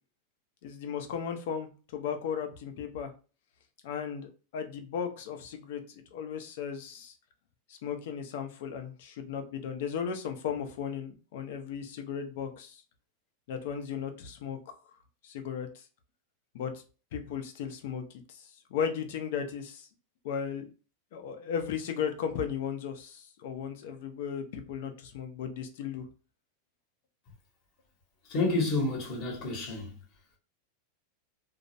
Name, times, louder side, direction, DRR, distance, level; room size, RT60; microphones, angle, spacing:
voice 1, 0.6-3.1 3.8-5.8 6.1-7.1 7.7-12.8 13.5-14.7 15.2-15.8 16.5-16.8 17.1-18.0 18.3-19.9 20.2-20.7 21.1-26.1, left 7 dB, 65° left, 0.5 m, -36 dB
voice 2, 28.3-30.0, left 2 dB, 35° left, 0.9 m, -29 dB
2.3 x 2.0 x 2.6 m
supercardioid pair, 155°, 0 cm